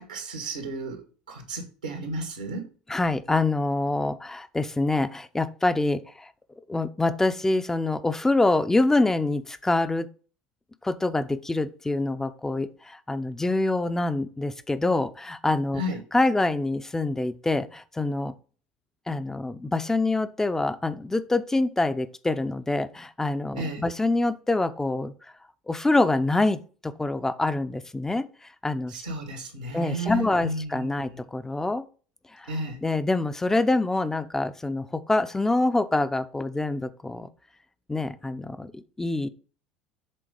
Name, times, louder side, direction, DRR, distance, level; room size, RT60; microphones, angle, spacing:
voice 1, 0.0-2.7 15.8-16.0 23.5-23.9 28.9-31.2 32.5-32.8, right 1 dB, 90° right, 3 dB, 2.1 m, -33 dB
voice 2, 2.9-6.3 6.7-10.1 10.8-15.8 16.1-18.3 19.1-25.1 25.7-28.3 28.6-29.0 29.7-31.8 32.3-32.5 32.8-37.3 37.9-39.3, left 2 dB, 10° left, 11 dB, 0.7 m, -25 dB
7.7 x 3.8 x 5.2 m, 0.38 s
figure-of-eight pair, 70°, 4 cm